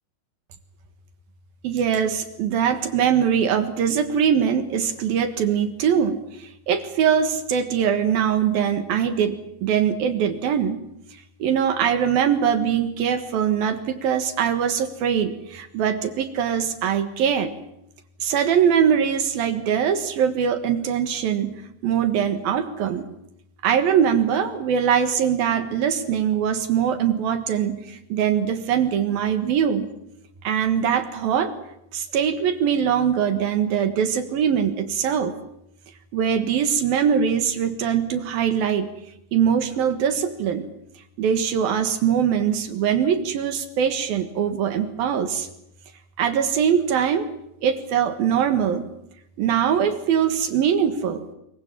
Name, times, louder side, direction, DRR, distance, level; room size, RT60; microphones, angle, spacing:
voice 1, 1.6-10.8 11.4-17.5 18.2-21.6 21.8-23.1 23.6-29.9 30.4-31.5 31.9-35.3 36.1-38.9 39.3-40.7 41.2-45.5 46.2-47.3 47.6-48.9 49.4-51.2, right 8 dB, 65° right, 10 dB, 3.1 m, -22 dB
24.5 x 23.0 x 7.5 m, 0.80 s
omnidirectional pair, 5.0 m